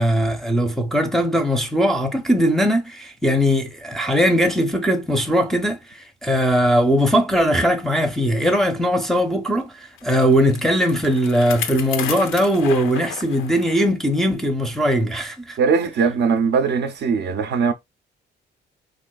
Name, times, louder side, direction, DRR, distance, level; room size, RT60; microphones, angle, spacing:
voice 1, 0.0-5.8 6.2-15.6, equal, ahead, 0.5 m, -20 dB
Bicycle, 10.0-13.9 14.3-14.4 15.3-15.4, left 9 dB, 85° left, 0.5 m, -33 dB
voice 2, 15.6-17.7, right 5 dB, 60° right, 0.5 m, -20 dB
3.6 x 2.5 x 2.2 m
cardioid pair, 90°, 20 cm